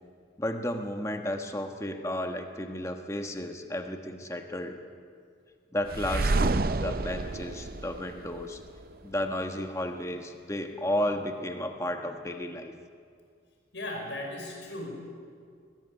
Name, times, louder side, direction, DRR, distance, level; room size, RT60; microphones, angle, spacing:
voice 1, 0.4-4.8 5.7-8.6 9.0-12.7, left 1 dB, 15° left, 5 dB, 1.3 m, -33 dB
sound 1, 5.9-8.8, right 3 dB, 50° right, 0.6 m, -29 dB
voice 2, 13.7-15.0, left 1 dB, 75° left, 0 dB, 5.7 m, -37 dB
22.0 x 13.5 x 9.9 m, 2.2 s
head